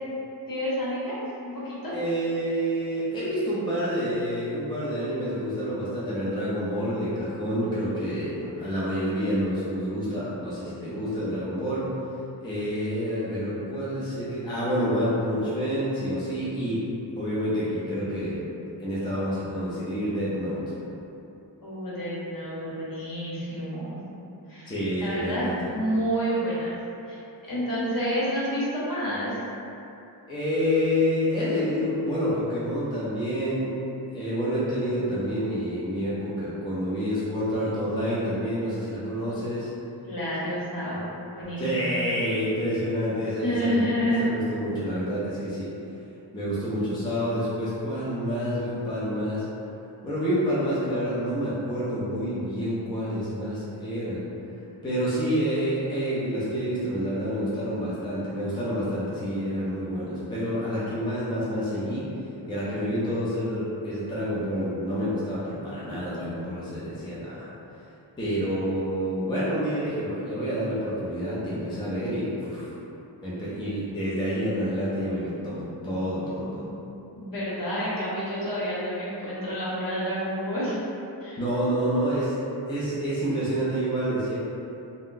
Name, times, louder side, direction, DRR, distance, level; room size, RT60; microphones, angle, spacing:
voice 1, 0.5-1.2 1.4-1.9 21.6-24.0 24.5-24.7 25.0-26.7 27.1-29.4 40.1-41.1 41.3-41.9 43.4-44.2 76.5-76.6 77.2-80.8 81.2-81.4, equal, 45° left, -9 dB, 0.9 m, -29 dB
voice 2, 1.9-11.9 12.4-16.8 17.2-18.4 18.8-20.6 24.6-25.7 30.3-33.8 34.1-39.7 41.6-43.9 44.2-45.7 46.3-49.4 50.0-54.2 54.8-62.0 62.5-67.5 68.2-72.7 73.2-76.7 81.4-84.4, equal, 10° left, -9 dB, 0.4 m, -28 dB
2.5 x 2.1 x 3.7 m, 2.8 s
wide cardioid pair, 150°, 46 cm